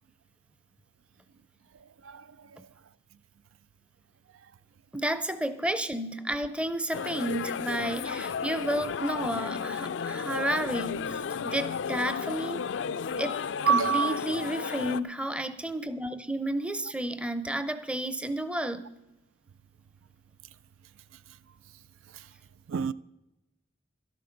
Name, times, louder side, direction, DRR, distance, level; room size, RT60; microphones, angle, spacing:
voice 1, 4.9-12.6 13.2-13.4 13.7-18.9, right 1 dB, 5° right, 0.6 m, -31 dB
sound 1, 6.9-15.0, left 6 dB, 65° left, 0.4 m, -33 dB
voice 2, 13.6-14.2 22.7-22.9, right 6 dB, 90° right, 0.4 m, -25 dB
12.5 x 11.0 x 5.2 m
head